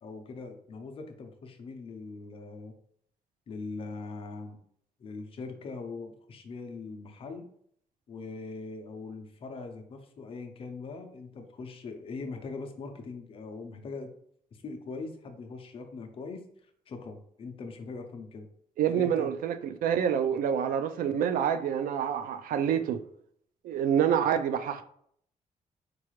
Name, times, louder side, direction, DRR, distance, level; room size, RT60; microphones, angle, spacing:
voice 1, 0.0-2.7 3.5-4.6 5.0-7.5 8.1-14.1 14.5-18.5 18.9-19.3, left 3 dB, 40° left, 0.5 m, -41 dB
voice 2, 18.8-23.0 23.6-24.8, right 8 dB, 90° right, 0.4 m, -27 dB
4.5 x 2.4 x 3.1 m
wide cardioid pair, 175°, 14 cm